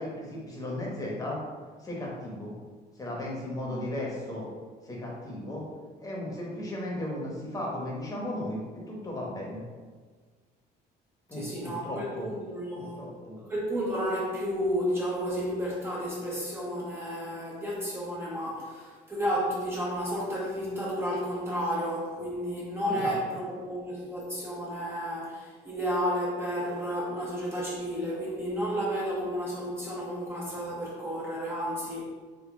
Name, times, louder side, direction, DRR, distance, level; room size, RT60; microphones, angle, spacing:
voice 1, 0.0-1.4 1.8-2.5 3.0-4.5 4.8-5.6 6.0-9.6 11.3-12.3 12.7-13.4 22.9-23.1, left 1 dB, 20° left, -4 dB, 1.0 m, -35 dB
voice 2, 11.4-13.0 13.4-32.1, equal, 15° right, -6 dB, 0.7 m, -32 dB
3.7 x 2.1 x 3.7 m, 1.5 s
cardioid pair, 110°, 17 cm